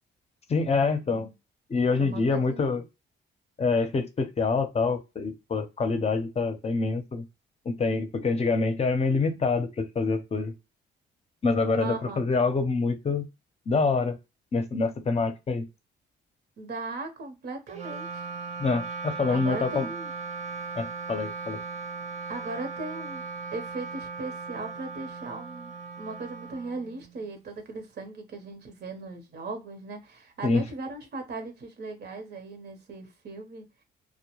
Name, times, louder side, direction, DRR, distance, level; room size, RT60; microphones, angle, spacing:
voice 1, 0.5-1.3 1.7-2.8 3.6-7.2 7.6-10.5 11.4-13.3 13.7-14.2 14.5-15.7 18.6-19.9 20.8-21.6 30.4-30.6, left 4 dB, 30° left, 0.7 m, -26 dB
voice 2, 2.0-2.8 11.8-12.3 16.6-18.2 19.3-20.1 22.3-23.2 23.5-33.7, right 3 dB, 55° right, 1.0 m, -38 dB
Wind instrument woodwind instrument, 17.7-27.3, right 4 dB, 35° right, 0.6 m, -38 dB
2.2 x 2.2 x 3.0 m
cardioid pair, 90°, 20 cm